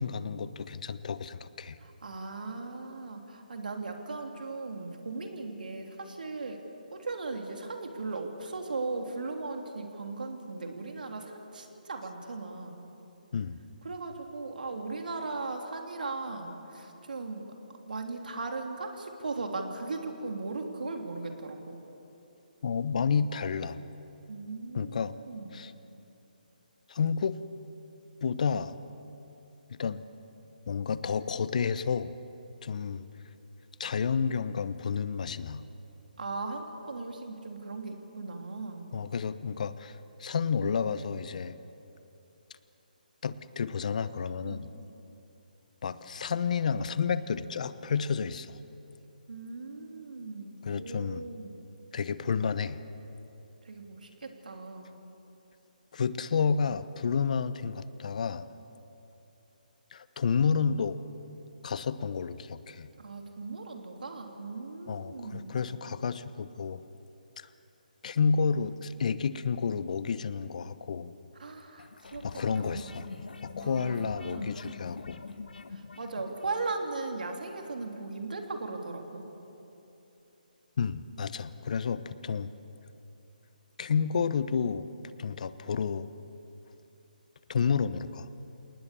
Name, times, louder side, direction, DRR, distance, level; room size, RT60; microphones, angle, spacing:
voice 1, 0.0-1.8 13.3-13.6 22.6-23.8 24.7-25.1 25.5-25.7 26.9-27.4 28.2-28.7 29.7-30.0 30.7-32.1 32.6-33.0 33.8-35.6 38.9-41.6 43.2-44.7 45.8-48.6 50.6-51.3 51.9-52.8 55.9-58.5 59.9-61.0 61.6-62.9 64.9-66.8 67.4-67.5 68.0-71.1 72.2-73.1 73.4-75.2 80.8-82.5 83.8-84.9 85.2-86.1 87.5-88.3, left 6 dB, 55° left, 14 dB, 1.0 m, -30 dB
voice 2, 1.8-6.6 6.9-12.8 13.8-17.5 17.9-21.8 24.3-25.6 36.2-38.9 44.4-44.6 49.3-51.6 53.6-55.0 63.0-65.6 71.4-72.3 72.5-73.0 73.6-74.9 75.7-79.2, right 3 dB, 70° right, 3 dB, 3.3 m, -38 dB
sound 1, 71.8-76.7, left 4 dB, 75° left, 1.3 m, -44 dB
28.0 x 19.5 x 7.0 m, 3.0 s
figure-of-eight pair, 150°, 5 cm